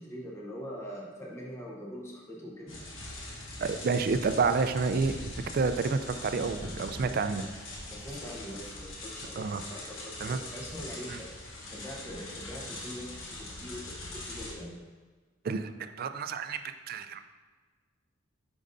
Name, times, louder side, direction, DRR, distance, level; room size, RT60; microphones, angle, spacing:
voice 1, 0.0-2.8 7.9-11.3 11.7-14.8, equal, 15° left, -2 dB, 0.8 m, -43 dB
sound 1, 2.7-14.5, left 2 dB, 80° left, 1.2 m, -42 dB
voice 2, 3.6-7.5 9.4-9.6 10.2-10.4 11.1-11.2 15.4-16.6 16.9-17.2, right 4 dB, 50° right, 9 dB, 0.3 m, -29 dB
8.7 x 5.3 x 2.6 m, 1.4 s
head